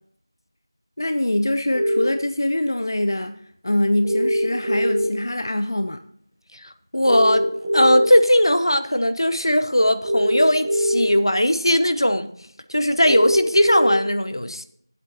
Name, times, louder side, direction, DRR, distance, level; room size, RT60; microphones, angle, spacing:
voice 1, 1.0-6.0, left 1 dB, 55° left, 0.4 m, -24 dB
sound 1, 1.7-2.1 4.0-5.1 7.0-8.1 10.0-11.1 13.0-14.0, equal, 10° right, 0.6 m, -21 dB
voice 2, 6.6-7.5 7.7-12.3 12.7-14.6, equal, 80° left, 0.9 m, -19 dB
12.5 x 8.2 x 2.8 m
figure-of-eight pair, 175°, 2 cm